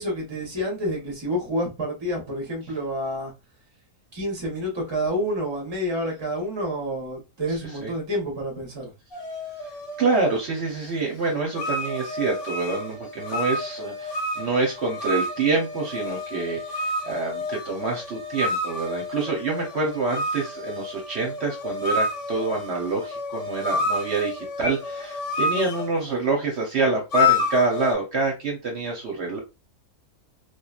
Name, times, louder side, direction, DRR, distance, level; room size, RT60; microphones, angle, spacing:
voice 1, 0.0-3.3 4.1-8.9, equal, 25° right, 0.8 m, -28 dB
voice 2, 7.5-7.9 10.0-29.4, right 3 dB, 55° right, 0.9 m, -26 dB
sound 1, 9.1-10.4 11.5-26.0 27.1-27.9, left 2 dB, 50° left, 0.8 m, -29 dB
3.0 x 2.4 x 2.3 m
omnidirectional pair, 1.5 m